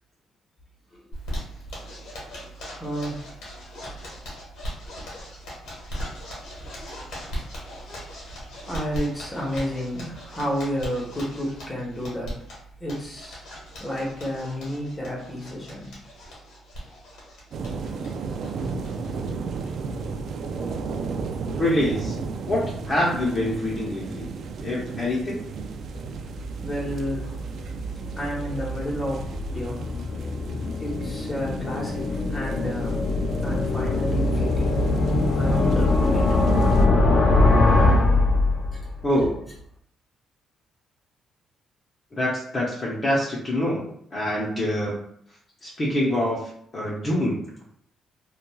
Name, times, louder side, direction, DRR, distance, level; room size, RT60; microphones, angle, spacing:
Zipper (clothing), 1.1-19.3 19.6-19.7 20.0-20.1 20.4-20.9, equal, 85° left, 1.2 m, -39 dB
voice 1, 2.7-3.4 7.1-7.5 8.6-12.3 12.8-13.4 13.8-15.9 17.9-18.1 26.6-27.4 28.2-29.9 30.8-33.0 33.4-35.0 35.3-36.3 38.7-38.8 39.2-39.3, equal, 20° left, -3 dB, 1.0 m, -31 dB
sound 1, 17.5-36.8, right 4 dB, 65° right, 0.3 m, -35 dB
voice 2, 21.6-22.2 22.5-24.3 24.6-25.4 39.0-39.4 42.1-45.0 45.6-47.4, left 1 dB, 35° left, -6 dB, 0.8 m, -25 dB
sound 2, 26.1-39.0, left 2 dB, 60° left, 0.4 m, -23 dB
3.0 x 2.3 x 2.3 m, 0.66 s
cardioid pair, 90°, 0 cm